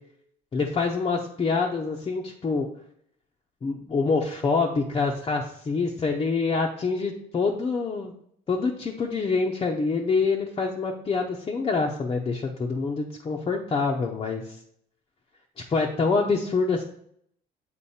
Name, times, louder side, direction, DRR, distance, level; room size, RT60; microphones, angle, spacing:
voice 1, 0.5-2.7 3.6-8.1 8.5-14.4 15.6-16.8, left 4 dB, 30° left, -1 dB, 0.8 m, -26 dB
7.2 x 4.3 x 4.3 m, 0.67 s
cardioid pair, 110°, 17 cm